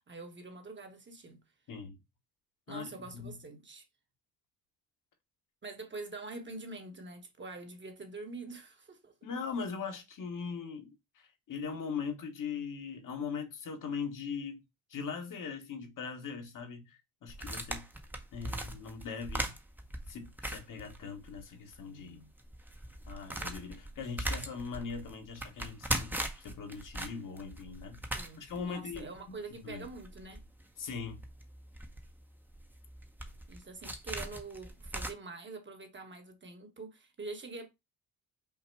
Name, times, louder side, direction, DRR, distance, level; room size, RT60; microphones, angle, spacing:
voice 1, 0.1-1.4 2.7-3.8 5.6-9.1 28.1-30.4 33.5-37.7, right 3 dB, 30° right, 1.1 m, -45 dB
voice 2, 2.7-3.4 9.2-14.6 14.9-17.9 18.3-19.5 20.1-22.3 23.1-28.0 28.4-29.4 29.6-29.9 30.8-31.2, left 5 dB, 55° left, 1.2 m, -40 dB
rubiks cube, 17.3-21.4 21.7-21.8 22.3-35.1, right 1 dB, 5° right, 0.7 m, -40 dB
5.7 x 2.1 x 4.5 m
cardioid pair, 100°, 39 cm